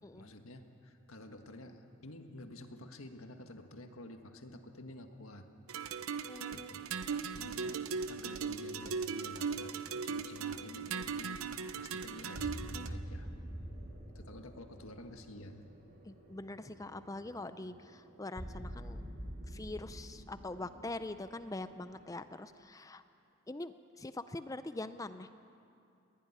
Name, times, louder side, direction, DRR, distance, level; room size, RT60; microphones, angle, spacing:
voice 1, 0.1-5.5 6.5-6.9 7.3-7.8 8.1-11.4 11.8-13.3 14.1-15.6, left 1 dB, 90° left, 5 dB, 1.7 m, -50 dB
sound 1, 5.7-12.9, right 5 dB, 90° right, 0.7 m, -38 dB
voice 2, 6.3-6.7 7.0-7.2 16.1-19.0 19.5-23.0 23.5-25.3, left 2 dB, 15° left, 11 dB, 0.5 m, -43 dB
sound 2, 12.1-22.2, equal, 45° right, 4.9 m, -47 dB
21.5 x 16.0 x 10.0 m, 2.6 s
head